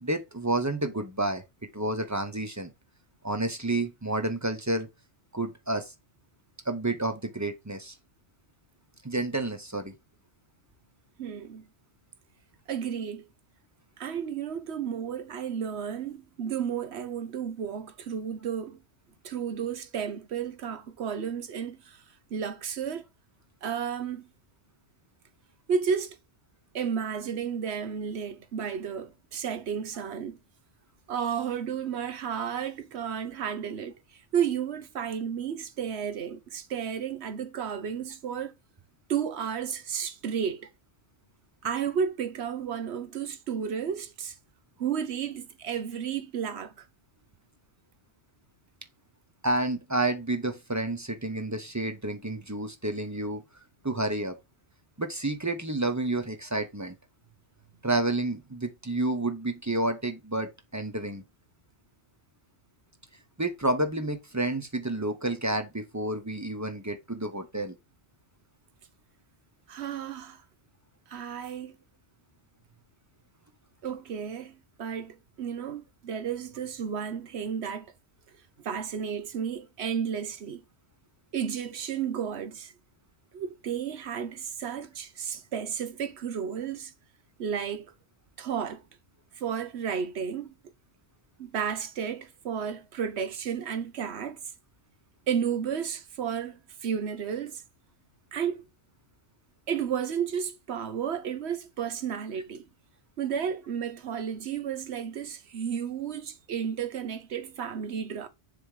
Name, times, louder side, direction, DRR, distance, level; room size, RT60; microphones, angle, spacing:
voice 1, 0.0-1.4 1.7-2.7 3.2-4.9 5.3-5.9 6.7-7.9 9.0-9.9 49.4-53.4 53.8-54.4 55.0-57.0 57.8-61.2 63.4-67.8, right 2 dB, 20° right, 0.7 m, -30 dB
voice 2, 11.2-11.7 12.7-13.3 14.0-18.8 19.2-22.0 22.3-23.1 23.6-24.3 25.7-26.2 26.7-30.4 31.1-33.9 34.3-38.5 39.1-40.7 41.6-44.3 44.8-46.7 69.7-70.4 71.1-71.8 73.8-77.9 78.6-80.6 81.3-82.7 83.3-86.9 87.4-87.9 88.4-88.8 89.4-90.5 91.4-94.4 95.3-97.6 98.3-98.6 99.7-102.6 103.2-108.3, right 7 dB, 75° right, 1.1 m, -32 dB
7.0 x 3.5 x 4.7 m
omnidirectional pair, 1.1 m